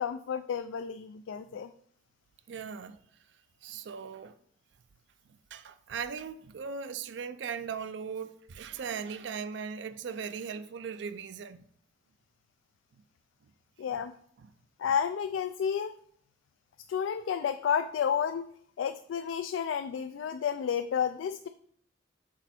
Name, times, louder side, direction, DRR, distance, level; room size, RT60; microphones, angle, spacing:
voice 1, 0.0-1.7 13.8-14.1 14.8-15.9 16.9-18.5 18.8-21.5, left 7 dB, 85° left, 0.3 m, -31 dB
voice 2, 2.5-3.0 3.6-4.4 5.5-11.6 13.9-14.0 14.4-14.5, right 6 dB, 70° right, 0.4 m, -38 dB
6.1 x 4.4 x 4.2 m
head